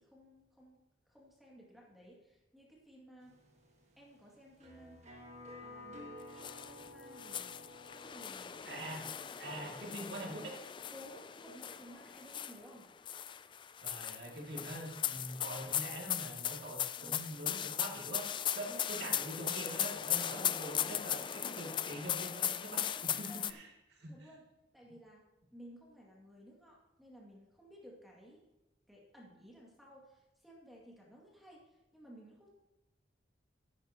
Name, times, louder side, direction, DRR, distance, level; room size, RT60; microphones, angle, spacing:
voice 1, 0.0-3.4 4.0-5.0 5.6-7.6 8.0-8.7 10.9-12.9 16.9-17.3 18.7-19.0 23.0-23.5 24.1-24.5 24.7-25.2 25.5-28.5 28.9-32.5, equal, ahead, -4 dB, 2.3 m, -56 dB
sound 1, 3.2-8.8, left 1 dB, 40° right, 1.6 m, -52 dB
sound 2, 6.4-6.9 7.2-12.7 13.1-23.5, left 10 dB, 25° left, 0.3 m, -38 dB
voice 2, 8.6-9.1 9.4-10.5 13.8-24.3, right 1 dB, 65° right, -1 dB, 2.6 m, -44 dB
14.0 x 11.0 x 3.0 m, 1.0 s
head